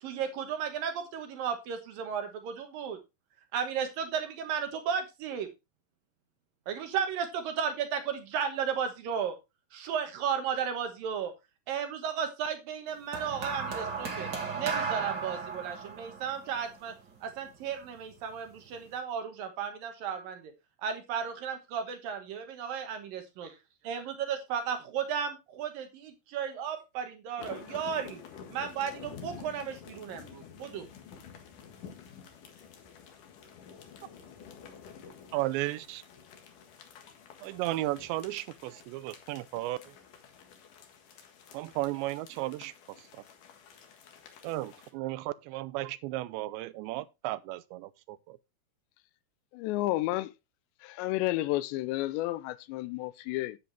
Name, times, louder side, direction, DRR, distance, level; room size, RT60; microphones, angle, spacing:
voice 1, 0.0-3.0 3.5-5.5 6.7-9.4 9.7-11.3 11.7-14.3 14.6-16.9 17.2-20.5 20.8-23.5 23.9-24.0 24.3-28.2 28.5-30.8, right 7 dB, 65° right, 2.6 m, -34 dB
sound 1, 13.1-17.6 18.5-18.7, right 5 dB, 35° right, 1.9 m, -35 dB
sound 2, 27.4-44.9, left 7 dB, 60° left, 2.7 m, -50 dB
voice 2, 35.3-36.0 37.4-39.8 41.5-42.7 44.4-48.4, right 17 dB, 90° right, 2.9 m, -34 dB
voice 3, 49.5-50.3 50.8-53.6, left 17 dB, 85° left, 2.9 m, -31 dB
10.0 x 8.7 x 3.3 m
omnidirectional pair, 5.0 m